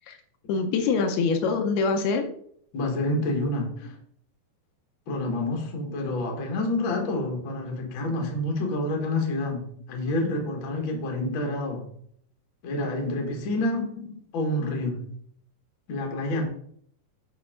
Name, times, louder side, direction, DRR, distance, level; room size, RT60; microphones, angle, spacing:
voice 1, 0.5-2.2 13.8-13.9 16.2-16.3, left 4 dB, 75° left, 5 dB, 2.6 m, -25 dB
voice 2, 2.7-3.9 5.1-11.8 12.6-13.9 14.3-15.0 15.9-16.4, left 1 dB, 55° left, 1 dB, 1.4 m, -28 dB
8.0 x 6.0 x 3.7 m, 0.64 s
omnidirectional pair, 4.8 m